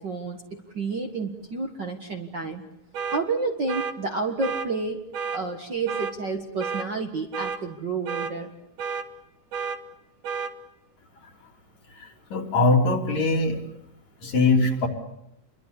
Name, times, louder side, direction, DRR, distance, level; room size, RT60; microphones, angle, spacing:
voice 1, 0.0-2.6 3.1-5.0 5.3-8.5, right 3 dB, 45° right, 4 dB, 1.7 m, -30 dB
sound 1, 2.9-3.2 3.7-3.9 4.4-4.7 5.1-5.4 5.9-6.1 6.6-6.9 7.3-7.6 8.1-8.3 8.8-9.1 9.5-9.8 10.2-10.5, right 6 dB, 70° right, 3.0 m, -30 dB
voice 2, 12.0-13.6 14.2-14.9, left 3 dB, 55° left, 2 dB, 4.5 m, -22 dB
28.0 x 23.0 x 8.4 m, 0.76 s
omnidirectional pair, 3.8 m